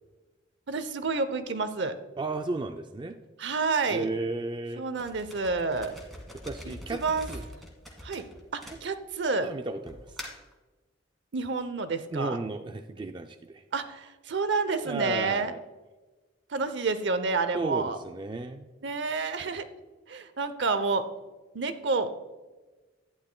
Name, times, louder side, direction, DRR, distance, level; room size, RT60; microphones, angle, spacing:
voice 1, 0.7-1.9 3.4-4.1 4.8-5.9 6.7-7.3 8.0-9.5 11.3-12.4 13.7-15.5 16.5-18.0 18.8-19.7 20.1-21.0 21.5-22.1, right 4 dB, 65° right, 11 dB, 0.7 m, -29 dB
voice 2, 2.2-3.2 3.9-4.8 6.4-7.0 7.3-7.4 8.7-8.8 9.4-10.0 12.1-13.6 14.9-15.6 17.5-18.7, right 3 dB, 25° right, 6 dB, 0.3 m, -34 dB
sound 1, 5.0-9.3 9.9-10.5, equal, ahead, 1.4 m, -43 dB
11.5 x 10.0 x 2.2 m, 1.2 s
head